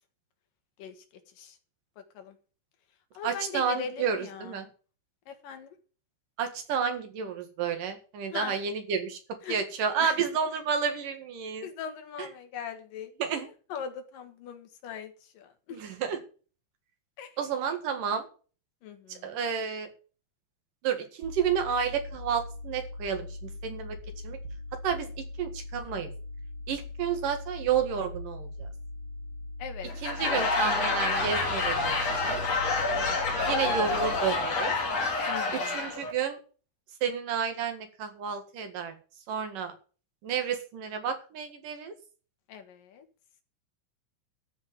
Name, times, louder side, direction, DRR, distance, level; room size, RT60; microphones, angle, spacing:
voice 1, 0.8-1.6 2.0-2.4 3.1-4.7 5.3-5.8 8.3-8.6 9.4-9.6 10.0-10.2 11.6-15.8 17.2-17.4 18.8-19.4 29.6-29.9 30.2-30.4 32.9-34.0 35.3-35.9 42.5-43.1, left 7 dB, 85° left, 7 dB, 3.4 m, -41 dB
voice 2, 3.2-4.7 6.4-9.2 9.5-11.7 12.2-12.3 13.2-13.5 15.7-16.2 17.4-18.3 19.1-19.9 20.8-24.0 24.2-24.4 24.8-26.1 26.7-28.7 30.0-32.4 33.5-34.7 35.5-36.4 37.0-38.9 39.3-39.7 40.2-41.9, right 7 dB, 80° right, 7 dB, 3.5 m, -31 dB
sound 1, 21.2-34.2, left 2 dB, 45° right, 2.0 m, -41 dB
Laughter / Crowd, 29.9-36.1, left 3 dB, 55° left, 3.1 m, -28 dB
Explosion, 31.2-35.9, equal, 25° right, 2.3 m, -45 dB
13.0 x 5.5 x 9.3 m, 0.39 s
omnidirectional pair, 3.8 m